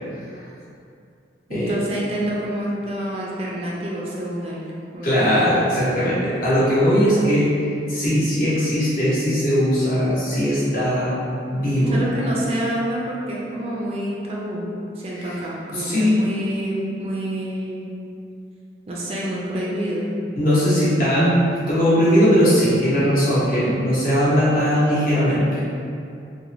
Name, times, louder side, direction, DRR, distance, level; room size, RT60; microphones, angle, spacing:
voice 1, 1.5-4.6 4.9-5.6 11.9-14.7 15.0-17.9 18.9-20.1, right 1 dB, 35° right, -5 dB, 0.3 m, -28 dB
voice 2, 5.0-7.5 7.9-11.2 11.5-12.0 15.1-15.3 15.7-16.2 20.4-25.6, equal, 50° left, -10 dB, 0.9 m, -19 dB
3.0 x 2.1 x 2.5 m, 2.5 s
head